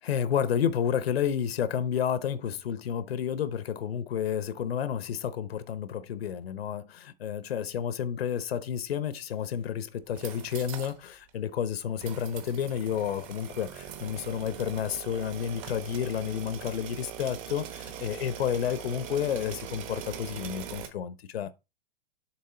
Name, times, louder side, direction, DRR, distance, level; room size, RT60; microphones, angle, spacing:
voice 1, 0.0-21.5, left 8 dB, 85° left, 1.0 m, -31 dB
sound 1, 10.0-11.0 11.3-11.4 12.0-20.9, right 9 dB, 35° right, 1.3 m, -42 dB
7.4 x 3.6 x 5.7 m
hypercardioid pair, 155°, 30 cm